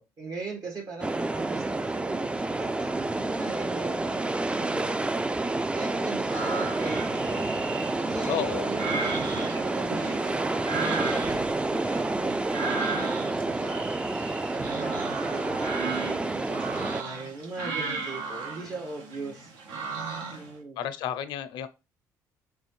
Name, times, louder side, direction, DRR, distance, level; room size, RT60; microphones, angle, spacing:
voice 1, 0.0-13.9 14.5-19.5 20.3-20.8, right 3 dB, 55° right, 1.4 m, -39 dB
sound 1, 1.0-17.0, right 2 dB, 15° right, 0.3 m, -29 dB
sound 2, 6.3-20.5, right 4 dB, 80° right, 1.0 m, -36 dB
voice 2, 8.3-8.7 20.3-20.4 20.8-21.7, left 9 dB, 75° left, 0.5 m, -32 dB
sound 3, 11.2-13.4 13.9-14.0, right 3 dB, 35° right, 1.0 m, -49 dB
3.6 x 3.1 x 3.0 m
supercardioid pair, 65°, 8 cm